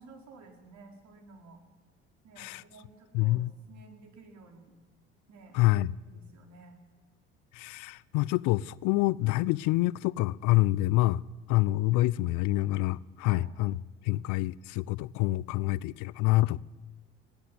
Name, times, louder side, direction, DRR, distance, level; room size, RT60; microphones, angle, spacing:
voice 1, 0.0-1.6 2.2-4.8 5.3-6.8 13.2-13.5, right 4 dB, 55° right, 5.2 m, -53 dB
voice 2, 3.1-3.5 5.5-5.9 7.5-11.2 11.5-13.8 14.0-16.6, left 18 dB, 65° left, 0.6 m, -27 dB
21.5 x 16.0 x 9.7 m
hypercardioid pair, 60°, 33 cm